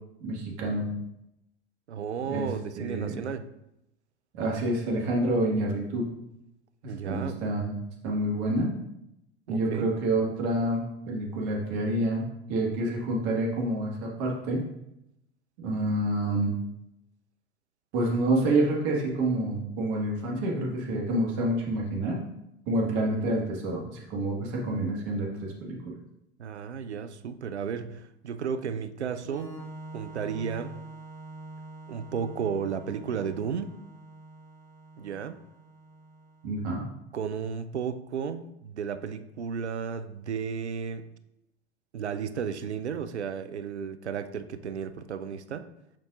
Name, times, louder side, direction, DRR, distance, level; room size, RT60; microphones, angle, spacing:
voice 1, 0.2-0.9 2.3-2.5 2.8-3.2 4.3-6.0 7.0-7.7 8.0-8.7 9.5-14.6 15.6-16.5 17.9-22.2 22.7-25.3 25.6-25.9 36.4-36.9, right 1 dB, 50° right, -2 dB, 1.7 m, -28 dB
voice 2, 1.9-3.5 6.8-7.4 9.5-9.9 26.4-29.6 29.9-30.7 31.9-33.8 35.0-35.4 37.1-41.0 41.9-45.7, right 7 dB, 90° right, 12 dB, 0.5 m, -33 dB
Organ, 29.2-36.8, right 2 dB, 10° left, 1.6 m, -46 dB
7.4 x 5.7 x 2.5 m, 0.85 s
figure-of-eight pair, 85°, 33 cm